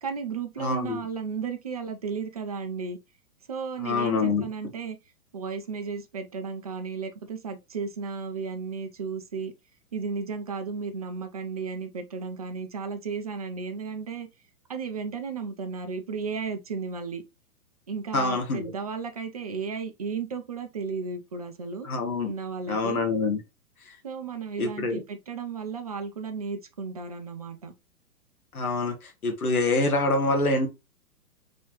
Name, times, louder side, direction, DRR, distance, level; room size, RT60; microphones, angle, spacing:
voice 1, 0.0-3.0 3.5-5.0 5.3-9.5 9.9-14.3 14.7-17.2 17.9-21.9 22.2-23.0 24.0-27.7, right 5 dB, 25° right, 0.4 m, -34 dB
voice 2, 0.6-1.0 3.8-4.4 18.1-18.7 21.8-22.3 22.7-23.4 24.6-25.0 28.5-30.7, left 3 dB, 70° left, 1.0 m, -25 dB
4.1 x 3.2 x 2.9 m
figure-of-eight pair, 115°, 46 cm